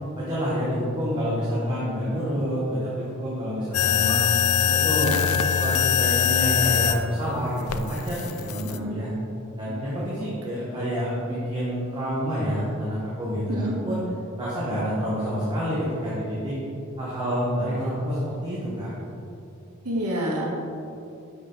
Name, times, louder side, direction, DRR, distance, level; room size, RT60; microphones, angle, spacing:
voice 1, 0.1-4.2 4.6-5.2 5.6-9.1 9.6-14.0 14.4-16.5 17.0-18.9, equal, 20° right, -9 dB, 1.2 m, -28 dB
sound 1, 3.7-7.0 7.7-8.8, left 8 dB, 70° left, 0.3 m, -22 dB
voice 2, 19.8-20.5, equal, 85° right, -3 dB, 1.5 m, -28 dB
6.1 x 6.1 x 3.9 m, 2.7 s
head